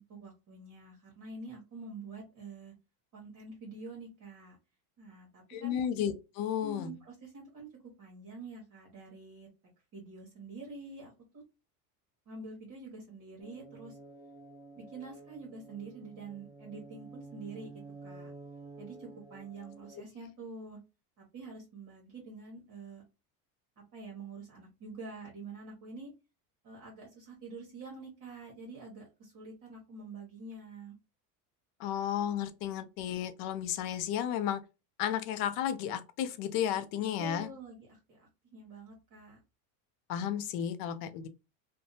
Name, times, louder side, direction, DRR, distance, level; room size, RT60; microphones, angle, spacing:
voice 1, 0.0-2.7 3.1-4.6 5.0-5.8 6.6-7.7 8.0-9.5 9.9-11.4 12.3-14.0 14.8-17.7 18.0-18.3 18.8-20.8 21.2-23.0 23.9-26.1 26.6-31.0 37.2-39.4, right 3 dB, 45° right, 1.1 m, -47 dB
voice 2, 5.5-6.9 31.8-34.6 35.0-37.5 40.1-41.3, left 10 dB, 55° left, 0.5 m, -33 dB
sound 1, 13.4-20.0, right 3 dB, 10° right, 0.3 m, -51 dB
2.6 x 2.2 x 2.6 m
supercardioid pair, 115°, 45 cm